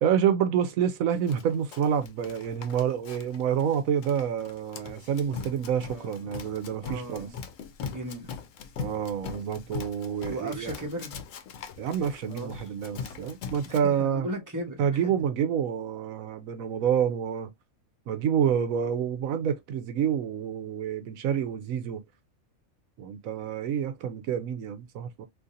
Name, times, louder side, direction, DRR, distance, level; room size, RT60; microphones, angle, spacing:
voice 1, 0.0-7.3 8.8-10.7 11.8-14.3 14.8-17.5 18.1-22.0 23.0-25.3, right 8 dB, 85° right, 1.0 m, -28 dB
Run, 1.3-13.8, left 6 dB, 75° left, 1.0 m, -41 dB
voice 2, 5.9-6.5 6.8-7.4 7.8-8.3 10.3-11.2 12.3-12.7 13.7-15.0, equal, 15° right, 1.2 m, -37 dB
3.8 x 2.8 x 2.6 m
omnidirectional pair, 1.4 m